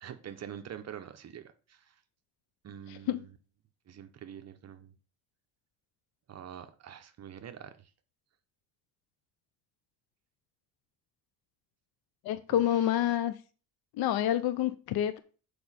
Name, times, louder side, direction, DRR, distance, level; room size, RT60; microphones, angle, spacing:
voice 1, 0.0-2.0 2.6-3.4 3.9-4.9 6.3-7.9 12.5-13.2, right 9 dB, 45° right, 0.7 m, -46 dB
voice 2, 2.9-3.2 12.2-13.3 13.9-15.2, left 11 dB, 75° left, 0.6 m, -28 dB
6.9 x 4.9 x 4.1 m
cardioid pair, 120°, 37 cm